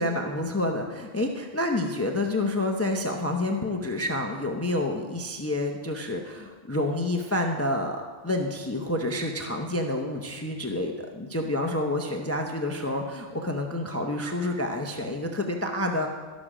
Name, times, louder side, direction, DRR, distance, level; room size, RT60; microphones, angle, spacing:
voice 1, 0.0-16.1, left 1 dB, 15° left, 3 dB, 0.5 m, -28 dB
13.0 x 6.2 x 4.9 m, 1.5 s
omnidirectional pair, 1.1 m